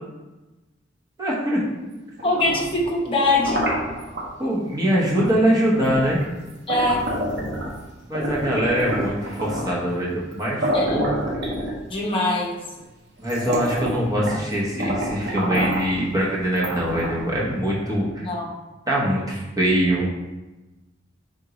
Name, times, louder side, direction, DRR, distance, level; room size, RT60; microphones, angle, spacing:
voice 1, 1.2-1.6 4.4-6.2 8.1-11.2 13.2-18.3 18.9-20.1, right 1 dB, 20° right, -5 dB, 0.9 m, -23 dB
voice 2, 2.2-3.6 6.7-7.0 10.7-11.1 11.9-12.5 18.2-18.5, left 2 dB, 25° left, -3 dB, 0.8 m, -22 dB
sound 1, 2.2-4.3 5.2-5.4 5.7-7.8 8.1-9.8 10.3-10.4 10.6-12.1 12.8-12.9 13.2-14.5 14.8-15.9 16.5-17.3, equal, 65° right, 0.8 m, -28 dB
3.8 x 3.6 x 2.9 m, 1.1 s
head